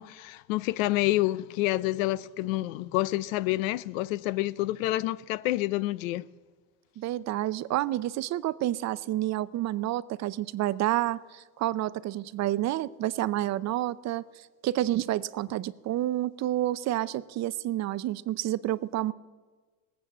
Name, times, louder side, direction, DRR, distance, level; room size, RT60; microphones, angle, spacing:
voice 1, 0.0-6.3, left 17 dB, 75° left, 0.7 m, -28 dB
voice 2, 7.0-14.2 14.6-19.1, right 14 dB, 45° right, 0.6 m, -29 dB
19.0 x 8.4 x 7.3 m
supercardioid pair, 100°, 40 cm